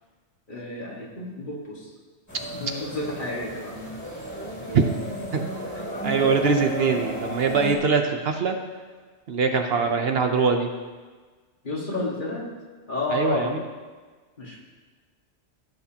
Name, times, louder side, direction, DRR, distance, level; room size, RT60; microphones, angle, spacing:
voice 1, 0.5-1.9 2.5-3.9 4.7-4.8 5.7-5.8 6.4-6.7 9.8-9.9 11.6-12.5 12.9-13.6 14.4-14.6, left 2 dB, 45° left, -3 dB, 2.0 m, -31 dB
sound 1, 2.3-7.8, right 1 dB, 15° left, 2.4 m, -34 dB
voice 2, 6.0-8.6 9.3-10.7 13.1-13.6, right 5 dB, 60° right, 4 dB, 0.9 m, -22 dB
15.5 x 8.2 x 2.9 m, 1.4 s
omnidirectional pair, 1.2 m